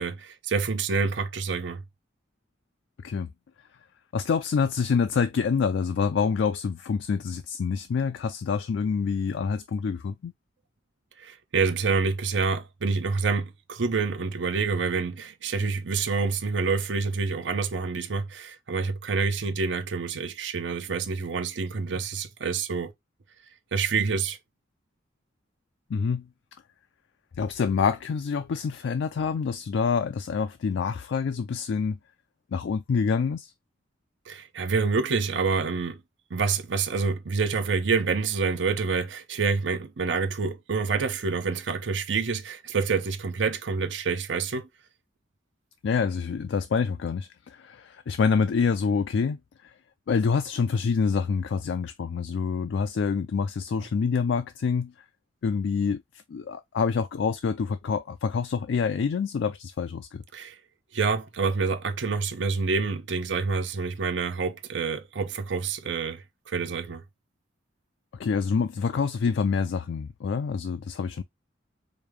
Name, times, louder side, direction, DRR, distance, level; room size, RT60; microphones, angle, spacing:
voice 1, 0.0-1.8 11.2-22.9 23.7-24.4 34.3-36.0 36.3-44.7 60.3-60.6 60.9-67.0, right 4 dB, 75° right, 0.6 m, -27 dB
voice 2, 4.1-10.3 25.9-26.3 27.4-32.0 32.5-33.5 45.8-49.7 50.1-54.9 55.4-56.0 56.3-60.2 68.2-71.2, left 5 dB, 70° left, 0.3 m, -26 dB
5.1 x 2.2 x 3.1 m
head